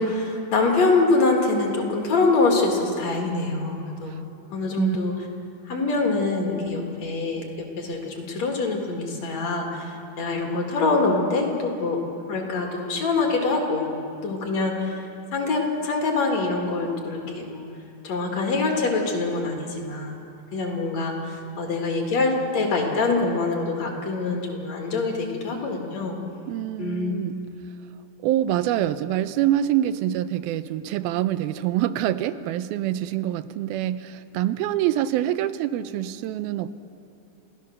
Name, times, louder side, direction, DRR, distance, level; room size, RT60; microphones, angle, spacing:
voice 1, 0.0-4.2 4.5-5.1 5.7-12.0 12.3-13.9 14.2-15.0 15.3-17.7 18.0-20.2 20.5-26.2 26.8-27.2, left 3 dB, 50° left, 1 dB, 3.0 m, -24 dB
voice 2, 26.5-27.4 28.2-36.7, right 12 dB, 85° right, 13 dB, 2.4 m, -25 dB
28.5 x 15.5 x 6.5 m, 2.7 s
omnidirectional pair, 4.3 m